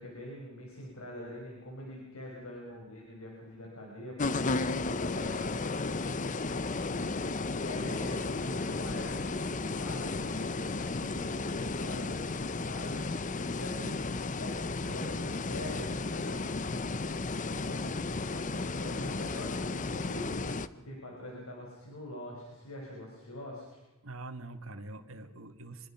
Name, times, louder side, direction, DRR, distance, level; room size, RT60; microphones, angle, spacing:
voice 1, 0.0-6.0 6.9-13.0 13.5-14.1 14.4-17.2 17.5-23.8, left 1 dB, 75° left, -2 dB, 5.4 m, -44 dB
sound 1, 4.2-20.7, left 3 dB, 35° left, 0.7 m, -34 dB
voice 2, 11.0-11.3 24.0-25.9, right 2 dB, 65° right, 8 dB, 1.9 m, -45 dB
25.5 x 22.0 x 5.8 m, 1.1 s
head